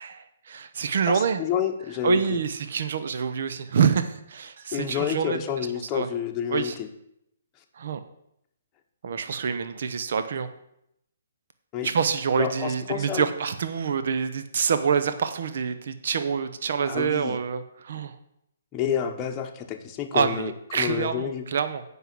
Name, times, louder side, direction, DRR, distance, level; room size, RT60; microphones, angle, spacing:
voice 1, 0.0-1.4 2.0-5.4 5.9-6.1 6.5-6.7 7.8-8.0 9.0-10.5 11.8-18.2 20.1-21.8, right 6 dB, 60° right, 10 dB, 0.8 m, -26 dB
voice 2, 1.1-2.4 4.7-6.9 11.7-11.9 12.4-13.3 16.8-17.4 18.7-21.5, left 9 dB, 20° left, 3 dB, 1.0 m, -29 dB
8.0 x 5.5 x 7.6 m, 0.78 s
hypercardioid pair, 155°, 0 cm